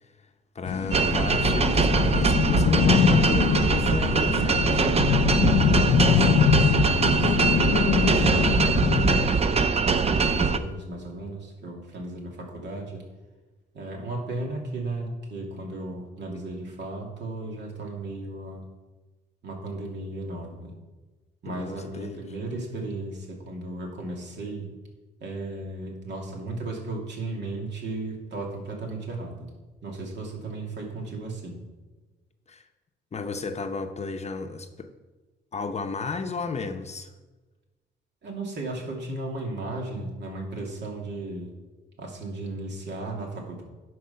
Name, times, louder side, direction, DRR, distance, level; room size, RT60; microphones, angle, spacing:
voice 1, 0.5-4.8 21.5-22.2 32.5-32.6 33.1-34.9 35.5-37.1, left 4 dB, 35° left, 7 dB, 0.8 m, -33 dB
sound 1, 0.7-9.3, left 9 dB, 65° left, 0.5 m, -23 dB
sound 2, 0.9-10.6, right 5 dB, 30° right, 0.5 m, -22 dB
voice 2, 6.1-9.5 10.0-13.0 13.7-18.7 19.4-20.7 21.4-24.7 25.2-29.5 29.8-31.6 38.2-41.5 42.0-43.6, right 2 dB, 60° right, 0 dB, 2.5 m, -35 dB
10.0 x 4.8 x 5.8 m, 1.2 s
cardioid pair, 90°, 20 cm